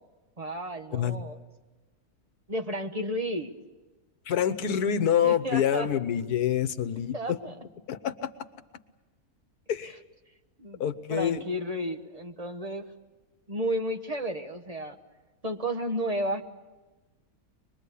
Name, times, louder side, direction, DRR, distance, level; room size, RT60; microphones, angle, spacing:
voice 1, 0.4-1.4 2.5-3.5 5.2-5.9 7.1-7.5 10.6-10.8 11.1-12.9 13.5-15.0 15.4-16.4, equal, 25° right, 6 dB, 1.2 m, -32 dB
voice 2, 4.3-7.4 7.9-8.3 9.7-10.0 10.8-11.4, left 9 dB, 85° left, 13 dB, 1.5 m, -26 dB
24.0 x 21.5 x 8.4 m, 1.2 s
omnidirectional pair, 1.6 m